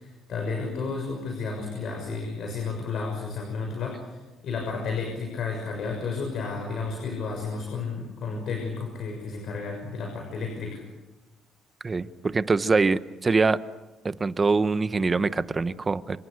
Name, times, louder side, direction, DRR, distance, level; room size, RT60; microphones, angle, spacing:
voice 1, 0.0-4.2 4.4-10.8, left 4 dB, 65° left, 2 dB, 6.4 m, -32 dB
voice 2, 11.8-13.6 14.0-16.2, right 4 dB, 30° right, 13 dB, 1.1 m, -24 dB
28.0 x 25.5 x 6.7 m, 1.1 s
cardioid pair, 85°, 0 cm